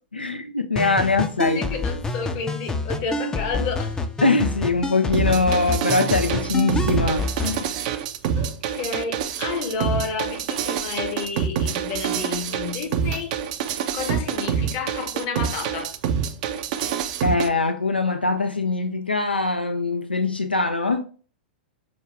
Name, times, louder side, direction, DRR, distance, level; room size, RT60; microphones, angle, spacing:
voice 1, 0.1-1.6 4.2-7.8 17.2-21.1, left 3 dB, 85° left, 0.4 m, -22 dB
sound 1, 0.8-7.6, left 2 dB, 10° left, 0.5 m, -28 dB
voice 2, 1.4-4.0 8.4-13.4 13.9-16.0, left 5 dB, 40° left, 0.9 m, -30 dB
sound 2, 5.1-17.5, right 8 dB, 45° right, 0.4 m, -26 dB
6.0 x 2.3 x 3.3 m
figure-of-eight pair, 100°, 5 cm